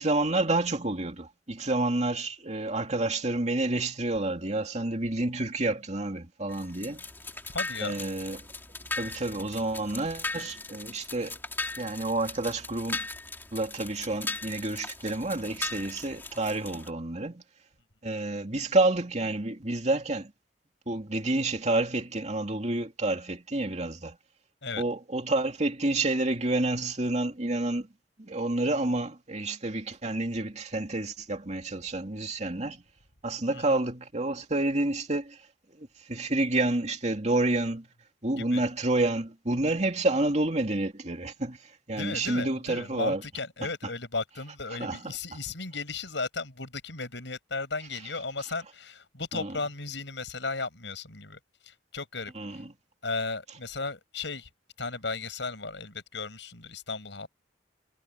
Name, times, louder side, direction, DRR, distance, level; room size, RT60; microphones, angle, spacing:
voice 1, 0.0-7.0 7.8-8.4 9.0-11.4 11.8-13.0 13.5-17.4 18.0-20.3 20.9-24.2 24.8-27.9 28.2-32.8 33.2-35.4 35.8-37.9 38.2-43.2 44.8-45.0 49.3-49.5 52.3-52.7, right 2 dB, 40° right, 2.6 m, -29 dB
sound 1, 6.5-16.9, left 3 dB, 10° left, 2.7 m, -38 dB
voice 2, 7.5-7.9 24.6-24.8 33.5-33.8 38.4-38.6 41.9-52.6 53.0-54.5 54.8-57.3, left 3 dB, 75° left, 6.0 m, -35 dB
head